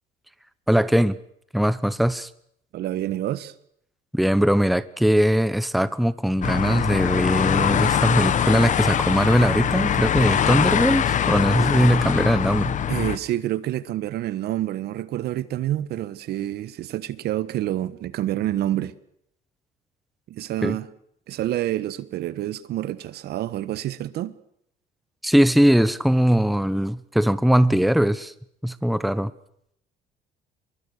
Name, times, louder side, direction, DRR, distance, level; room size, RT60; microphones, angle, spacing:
voice 1, 0.7-1.2 1.5-2.3 4.1-12.8 20.6-20.8 25.2-28.3 28.6-29.3, equal, ahead, 1.0 m, -20 dB
voice 2, 2.7-3.5 12.9-18.9 20.3-20.9 21.3-24.3, right 13 dB, 70° right, 1.4 m, -28 dB
sound 1, 6.4-13.2, left 9 dB, 50° left, 1.3 m, -22 dB
23.5 x 23.0 x 6.6 m
cardioid pair, 110°, 17 cm